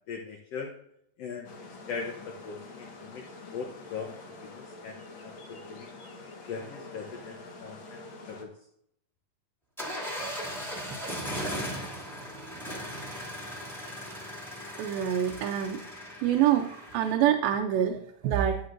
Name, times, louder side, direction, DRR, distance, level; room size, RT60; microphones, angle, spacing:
voice 1, 0.1-0.7 1.2-1.5 1.9-3.2 3.5-5.9 6.5-8.0 8.3-8.5, left 5 dB, 85° left, 2 dB, 1.4 m, -40 dB
sound 1, 1.4-8.4, left 3 dB, 50° left, 1.6 m, -46 dB
sound 2, 9.8-17.1, equal, ahead, 1.6 m, -38 dB
voice 2, 14.7-15.8 16.2-18.6, right 10 dB, 85° right, 3 dB, 2.4 m, -26 dB
11.0 x 9.5 x 2.6 m, 0.73 s
omnidirectional pair, 4.2 m